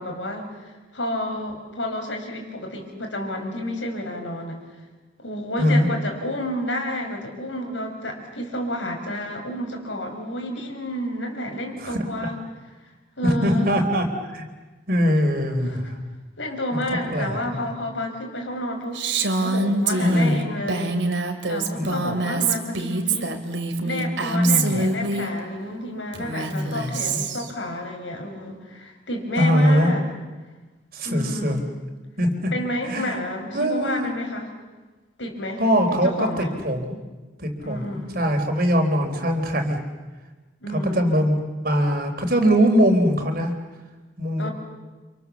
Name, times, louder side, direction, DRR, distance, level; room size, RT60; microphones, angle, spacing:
voice 1, 0.0-4.6 5.2-12.4 13.2-13.7 15.6-15.8 16.4-19.0 19.4-21.0 21.5-23.3 23.8-30.0 31.0-31.6 32.5-34.5 35.2-35.6 35.9-36.5 37.6-38.2 40.6-41.1 44.4-44.5, left 1 dB, 80° left, 3 dB, 6.2 m, -30 dB
voice 2, 11.8-12.3 13.2-14.1 14.3-14.5 14.9-15.9 16.7-16.8 17.1-17.6 20.0-20.4 21.8-22.1 24.3-24.8 26.5-27.2 29.4-29.9 30.9-31.6 32.2-32.5 32.9-33.1 33.5-34.1 35.6-37.0 37.4-39.8 40.9-41.4 41.6-43.5 44.2-44.5, equal, 50° right, 5 dB, 3.7 m, -22 dB
Female speech woman speaking, 18.9-25.3 26.1-27.5, right 3 dB, 75° right, 2.8 m, -25 dB
30.0 x 27.0 x 7.1 m, 1.2 s
head